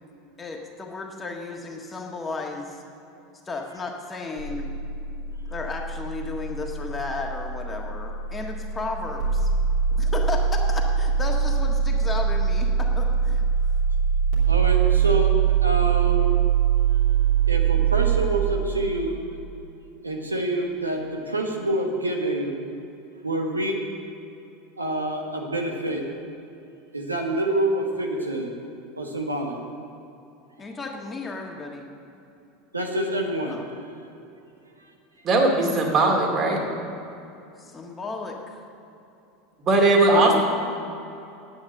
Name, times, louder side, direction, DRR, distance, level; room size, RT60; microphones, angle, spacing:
voice 1, 0.4-2.8 3.4-4.8 5.5-9.5 9.9-13.4 30.6-31.9 33.5-33.6 37.6-38.6, left 3 dB, 20° left, 1 dB, 1.6 m, -34 dB
sound 1, 4.4-18.2, right 7 dB, 65° right, 2.8 m, -23 dB
voice 2, 14.5-15.3 15.6-16.4 17.5-19.2 20.0-22.6 23.2-23.8 24.8-26.0 26.9-28.5 29.0-29.6 32.7-33.6 40.1-40.3, right 1 dB, 90° right, 2 dB, 1.1 m, -27 dB
voice 3, 35.3-36.6 39.6-40.4, right 2 dB, 40° right, 0 dB, 2.5 m, -19 dB
10.0 x 8.6 x 7.5 m, 2.8 s
figure-of-eight pair, 80°, 0 cm